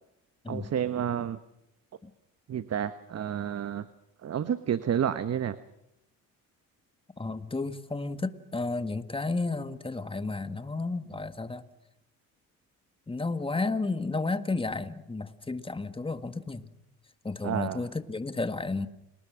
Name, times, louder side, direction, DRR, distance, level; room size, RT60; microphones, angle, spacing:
voice 1, 0.5-1.4 2.5-3.9 4.2-5.6 17.4-17.8, right 9 dB, 45° right, 12 dB, 1.1 m, -30 dB
voice 2, 7.2-11.6 13.1-16.7 17.2-18.9, left 3 dB, 15° left, 10 dB, 1.8 m, -32 dB
29.5 x 20.0 x 6.3 m, 0.82 s
cardioid pair, 80°, 35 cm